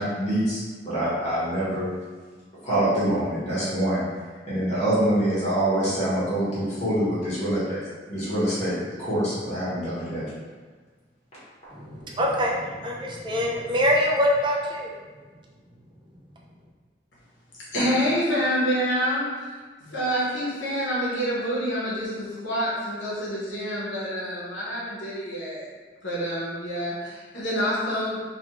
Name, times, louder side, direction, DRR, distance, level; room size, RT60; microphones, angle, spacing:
voice 1, 0.0-1.9 2.6-4.0 4.5-7.8 8.1-10.2, right 1 dB, 40° left, -10 dB, 0.9 m, -25 dB
voice 2, 11.7-15.0, equal, 25° right, -2 dB, 0.4 m, -24 dB
voice 3, 17.7-19.5 19.9-25.7 26.0-28.2, equal, 85° left, -7 dB, 0.8 m, -27 dB
2.4 x 2.3 x 2.9 m, 1.4 s
head